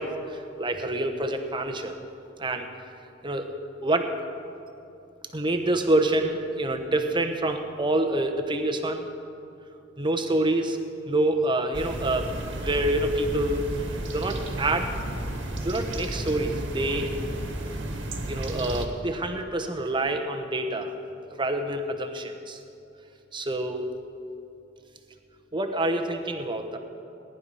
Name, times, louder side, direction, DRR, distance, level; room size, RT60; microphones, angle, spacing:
voice 1, 0.0-2.0 2.4-2.7 3.2-3.5 3.8-4.1 5.3-9.0 10.0-10.8 11.1-12.3 12.6-13.6 14.1-14.9 15.6-17.1 18.3-20.9 21.4-22.6 23.3-23.9 25.5-26.8, right 1 dB, 25° right, 5 dB, 1.0 m, -27 dB
sound 1, 11.7-18.9, right 1 dB, 65° right, 1.6 m, -32 dB
18.5 x 11.0 x 5.5 m, 2.7 s
head